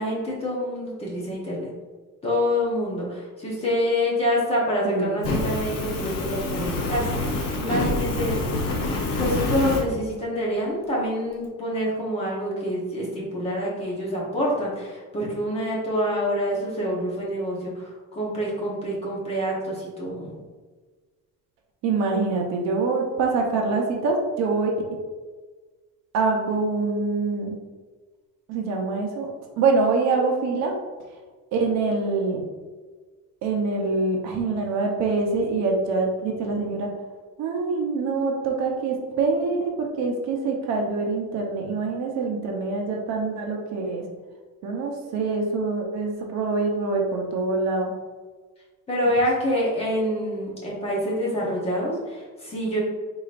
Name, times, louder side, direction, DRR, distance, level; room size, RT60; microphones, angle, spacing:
voice 1, 0.0-1.7 2.2-8.5 9.1-20.4 22.0-22.4 22.9-23.1 23.3-23.6 29.8-30.4 48.9-52.8, equal, 20° left, -5 dB, 0.9 m, -27 dB
voice 2, 4.8-5.3 21.8-24.7 26.1-27.6 28.5-29.3 29.6-30.7 31.5-32.4 33.4-36.9 37.4-44.0 44.6-47.9, right 3 dB, 55° right, 1 dB, 0.8 m, -25 dB
Fire, 5.2-9.8, left 2 dB, 50° left, 0.8 m, -26 dB
4.9 x 3.8 x 2.5 m, 1.4 s
cardioid pair, 175°, 32 cm